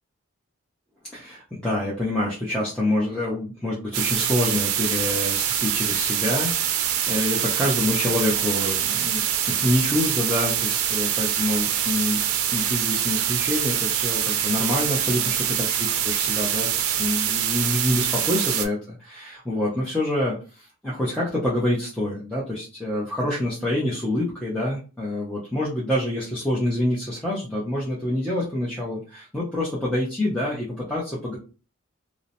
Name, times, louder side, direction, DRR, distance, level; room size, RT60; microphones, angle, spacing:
voice 1, 1.1-12.2 12.5-31.4, left 1 dB, 5° left, -7 dB, 0.5 m, -27 dB
sound 1, 3.9-18.7, right 9 dB, 85° right, 0.4 m, -24 dB
2.7 x 2.0 x 2.5 m, 0.34 s
head